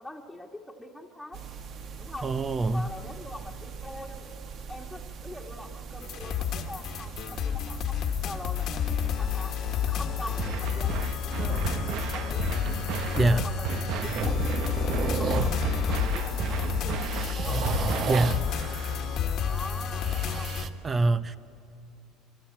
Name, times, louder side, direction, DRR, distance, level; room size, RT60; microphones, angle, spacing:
voice 1, 0.0-1.4 2.0-2.3 2.7-4.3 4.7-7.9 8.2-9.5 9.9-12.6 13.1-17.8 18.4-18.6 19.4-20.6, left 1 dB, 5° left, -1 dB, 1.8 m, -43 dB
sound 1, 1.3-20.7, right 5 dB, 45° right, 1.5 m, -37 dB
voice 2, 2.2-2.9 13.2-13.5 18.1-18.5 20.8-21.4, right 2 dB, 25° right, 12 dB, 0.8 m, -24 dB
sound 2, 6.0-20.7, left 8 dB, 55° left, 1.6 m, -30 dB
sound 3, 10.4-18.4, right 8 dB, 60° right, 1.1 m, -34 dB
25.0 x 24.0 x 8.8 m, 2.6 s
cardioid pair, 120°, 0 cm